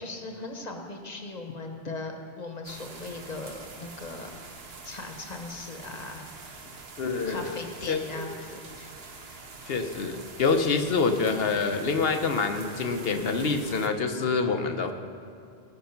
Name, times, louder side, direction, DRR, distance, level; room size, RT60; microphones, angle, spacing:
voice 1, 0.0-4.5 4.8-6.2 6.5-6.7 7.3-8.9, left 3 dB, 40° left, 4 dB, 1.3 m, -39 dB
sound 1, 2.6-13.9, right 3 dB, 70° right, 1.3 m, -45 dB
voice 2, 7.0-7.6 7.9-8.3 9.7-14.9, left 4 dB, 65° left, 6 dB, 1.0 m, -26 dB
19.0 x 6.5 x 5.8 m, 2.5 s
omnidirectional pair, 1.1 m